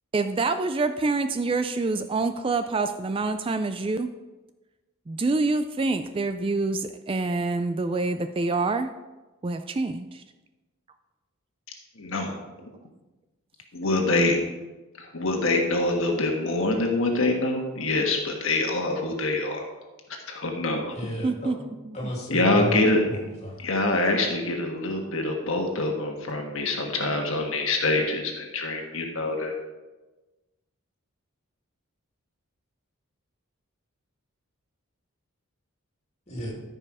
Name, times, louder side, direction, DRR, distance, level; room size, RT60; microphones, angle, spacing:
voice 1, 0.1-4.1 5.1-8.9 9.4-10.2 21.2-21.6 21.8-22.0, right 3 dB, 25° right, 9 dB, 0.3 m, -26 dB
voice 2, 12.0-12.3 13.7-14.4 15.0-19.6 20.3-20.9 22.3-23.0 23.6-29.5, left 2 dB, 65° left, 2 dB, 1.4 m, -25 dB
voice 3, 20.9-21.5 21.9-22.8 23.1-23.6 36.3-36.6, equal, 30° left, -2 dB, 2.6 m, -33 dB
14.0 x 5.4 x 4.8 m, 1.2 s
head